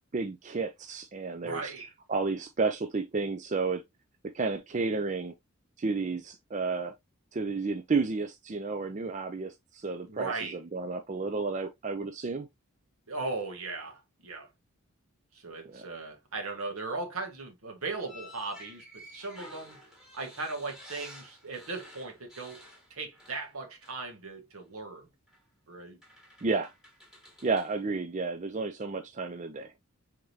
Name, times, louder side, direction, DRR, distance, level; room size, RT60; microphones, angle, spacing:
voice 1, 0.1-1.7 2.1-3.8 4.2-5.3 5.8-6.9 7.3-12.5 15.7-15.9 26.4-26.7 27.4-29.7, right 4 dB, 35° right, 0.4 m, -31 dB
voice 2, 1.4-1.9 10.1-10.6 13.1-14.5 15.3-19.8 20.1-22.6 22.9-25.1 25.7-26.0, right 3 dB, 75° right, 1.3 m, -38 dB
sound 1, 18.0-23.5 23.8-24.0 25.3-25.4 26.0-27.7, left 1 dB, ahead, 1.4 m, -52 dB
4.8 x 3.6 x 2.6 m
head